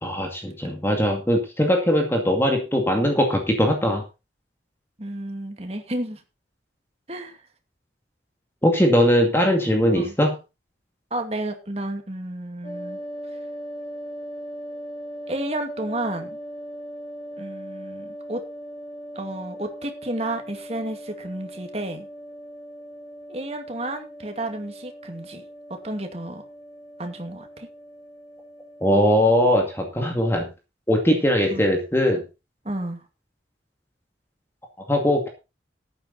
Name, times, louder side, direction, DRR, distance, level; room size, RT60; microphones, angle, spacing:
voice 1, 0.0-4.0 8.6-10.3 28.8-30.5 30.9-32.2 34.9-35.3, equal, 15° left, 2.3 m, -20 dB
voice 2, 5.0-6.2 7.1-7.4 9.9-10.1 11.1-13.0 15.3-16.4 17.4-18.4 19.2-22.1 23.3-25.4 25.8-26.4 27.0-27.7 31.5-31.6 32.6-33.0, right 1 dB, 35° right, 2.4 m, -31 dB
sound 1, 12.6-29.9, equal, 35° left, 4.9 m, -39 dB
13.5 x 9.9 x 4.1 m
head